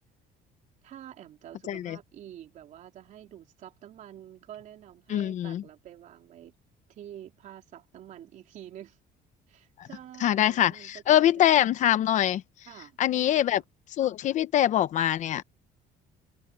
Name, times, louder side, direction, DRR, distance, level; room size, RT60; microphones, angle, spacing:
voice 1, 0.8-6.5 6.9-9.0 9.5-11.5 12.7-13.6, right 11 dB, 45° right, 3.5 m, -48 dB
voice 2, 5.1-5.6 9.8-9.9 10.2-12.4 13.0-13.6 14.0-15.4, left 11 dB, 45° left, 0.8 m, -24 dB
open air
cardioid pair, 175°, 17 cm